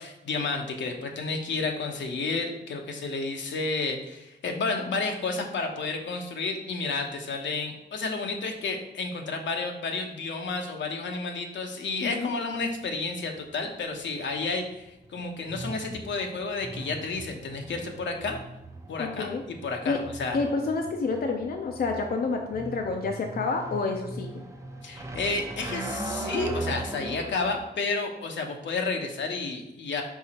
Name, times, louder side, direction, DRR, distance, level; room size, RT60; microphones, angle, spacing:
voice 1, 0.0-18.4 18.9-19.3 19.6-20.4 24.8-30.0, left 3 dB, 80° left, 3 dB, 1.0 m, -31 dB
sound 1, 12.5-27.6, right 2 dB, 15° right, 0.7 m, -39 dB
voice 2, 19.0-19.4 19.9-20.0 20.3-24.3, left 4 dB, 55° left, 2 dB, 0.6 m, -29 dB
4.9 x 4.7 x 4.3 m, 0.93 s
wide cardioid pair, 110°, 19 cm